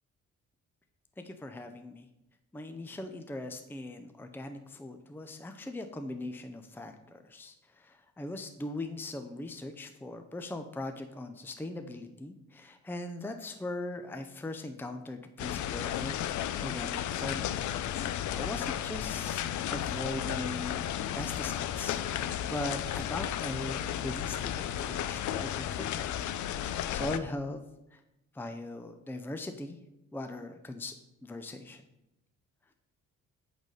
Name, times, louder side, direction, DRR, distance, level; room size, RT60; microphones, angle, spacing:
voice 1, 1.2-2.1 2.5-17.5 18.0-19.4 19.7-20.8 21.1-26.2 26.5-27.6 27.9-28.0 28.3-29.8 30.1-30.9 31.2-31.8, left 2 dB, 5° left, 7 dB, 0.6 m, -40 dB
sound 1, 15.4-27.2, left 10 dB, 70° left, 0.6 m, -33 dB
8.6 x 4.1 x 6.7 m, 0.90 s
cardioid pair, 90°, 30 cm